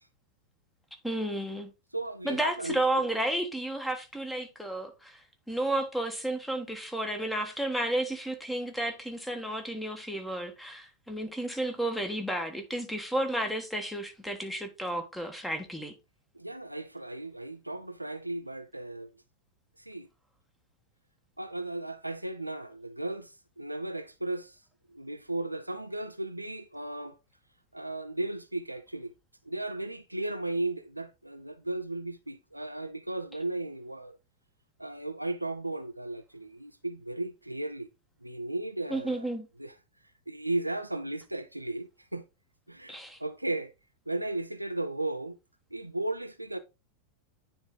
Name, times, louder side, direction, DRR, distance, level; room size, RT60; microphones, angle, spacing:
voice 1, 1.0-1.7 2.2-5.2 5.5-15.9 38.9-39.5 42.9-43.2, right 1 dB, 5° left, 1.3 m, -32 dB
voice 2, 1.9-3.0 16.3-19.1 19.8-20.1 21.4-24.6 24.9-27.2 27.7-29.1 29.4-34.2 34.8-37.9 38.2-39.3 39.6-39.7 40.3-42.2 42.7-43.7 44.1-45.4 45.7-46.6, right 2 dB, 85° right, 0.5 m, -35 dB
9.5 x 3.4 x 3.8 m
figure-of-eight pair, 90°, 0 cm